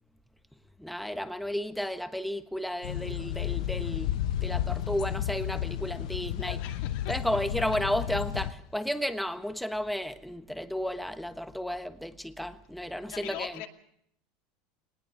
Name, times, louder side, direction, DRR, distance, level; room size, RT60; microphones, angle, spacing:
voice 1, 0.8-4.1 4.4-6.6 7.1-13.6, equal, ahead, 1.3 m, -33 dB
sound 1, 2.8-8.5, left 11 dB, 90° left, 0.8 m, -32 dB
voice 2, 6.4-7.2 7.6-7.8 13.1-13.7, left 12 dB, 70° left, 2.5 m, -41 dB
20.0 x 19.5 x 7.0 m
supercardioid pair, 120°, 4 cm